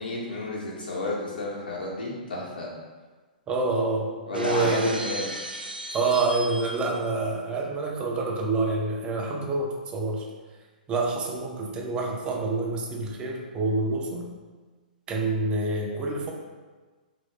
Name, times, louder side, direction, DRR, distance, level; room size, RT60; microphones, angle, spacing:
voice 1, 0.0-2.7 4.3-5.3, left 2 dB, 80° left, -4 dB, 1.0 m, -31 dB
voice 2, 3.5-5.0 5.9-10.3 10.9-14.3 15.1-16.3, right 3 dB, 20° right, 1 dB, 0.5 m, -27 dB
Shatter, 4.3-7.1, right 2 dB, 85° right, 0.3 m, -36 dB
3.0 x 2.6 x 3.3 m, 1.4 s
figure-of-eight pair, 115°, 5 cm